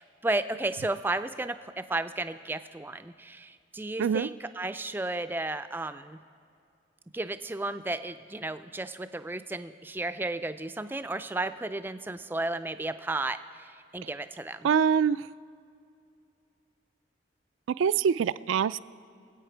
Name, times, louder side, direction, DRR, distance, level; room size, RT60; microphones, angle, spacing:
voice 1, 0.0-6.2 7.1-14.7, right 2 dB, 10° right, 11 dB, 0.3 m, -33 dB
voice 2, 4.0-4.3 14.6-15.3 17.8-18.8, right 7 dB, 90° right, 16 dB, 0.3 m, -24 dB
25.0 x 8.5 x 4.5 m, 2.4 s
head